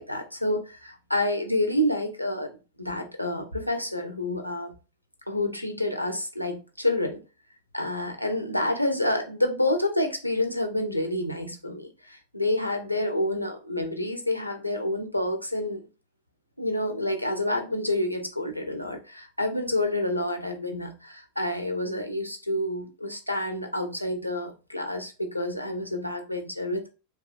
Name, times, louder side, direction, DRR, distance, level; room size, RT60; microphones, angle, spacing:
voice 1, 0.0-2.5 2.8-4.8 5.3-7.2 7.7-15.8 16.6-26.9, left 1 dB, 90° left, 0.5 m, -28 dB
2.9 x 2.2 x 2.4 m
figure-of-eight pair, 90°, 0 cm